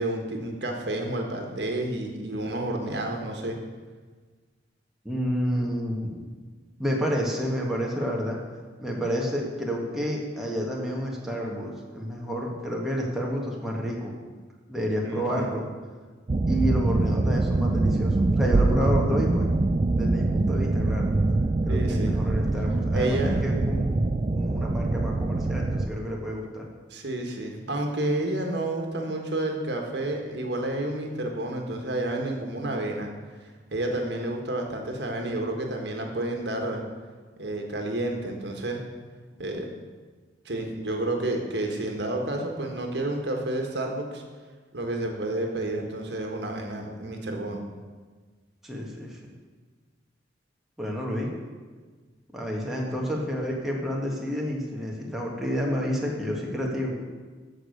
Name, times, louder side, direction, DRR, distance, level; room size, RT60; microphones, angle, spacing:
voice 1, 0.0-3.6 15.0-15.5 21.7-22.2 22.9-23.3 26.9-33.1 33.7-36.8 37.4-38.8 39.4-39.7 40.4-44.2 44.7-47.6, right 1 dB, 65° right, 2 dB, 1.5 m, -30 dB
voice 2, 5.0-6.2 6.8-8.4 8.8-14.1 14.7-15.7 16.5-19.5 19.9-21.1 21.6-23.9 24.3-26.7 48.6-49.2 50.8-51.3 52.3-56.9, equal, ahead, -3 dB, 1.6 m, -29 dB
sound 1, 16.3-25.9, right 2 dB, 35° right, 0.4 m, -24 dB
13.5 x 4.9 x 6.5 m, 1.5 s
head